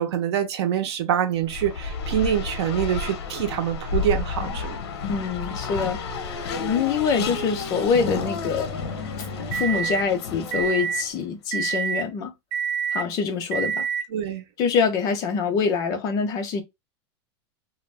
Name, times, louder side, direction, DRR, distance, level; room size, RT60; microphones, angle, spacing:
voice 1, 0.0-4.8 14.1-14.4, right 10 dB, 80° right, 0.8 m, -25 dB
Race car auto racing, 1.4-11.1, left 4 dB, 70° left, 0.7 m, -31 dB
voice 2, 5.1-8.8 9.5-12.3 12.9-13.9 14.6-16.6, left 5 dB, 25° left, 0.5 m, -25 dB
sound 1, 8.0-10.0 10.5-11.0 11.5-12.0 12.5-13.0 13.5-14.0, right 7 dB, 45° right, 0.9 m, -28 dB
2.5 x 2.2 x 3.2 m
supercardioid pair, 175°, 14 cm